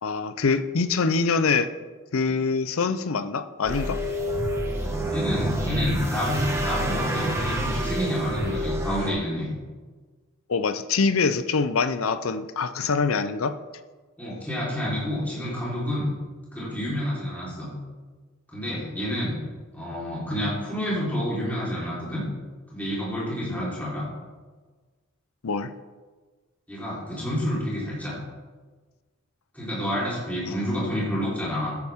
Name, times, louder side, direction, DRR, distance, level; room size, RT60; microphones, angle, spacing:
voice 1, 0.0-1.7 2.1-4.0 10.5-13.6 23.5-23.6 25.4-25.7 30.5-30.6, left 4 dB, 75° left, 10 dB, 0.6 m, -24 dB
sound 1, 3.6-9.1, equal, 15° right, 1.5 m, -28 dB
voice 2, 5.1-9.5 14.2-16.1 16.5-17.7 18.5-19.4 19.7-22.2 22.7-24.0 26.7-28.2 29.5-31.8, equal, 5° left, -8 dB, 4.0 m, -29 dB
14.0 x 9.6 x 3.6 m, 1.4 s
head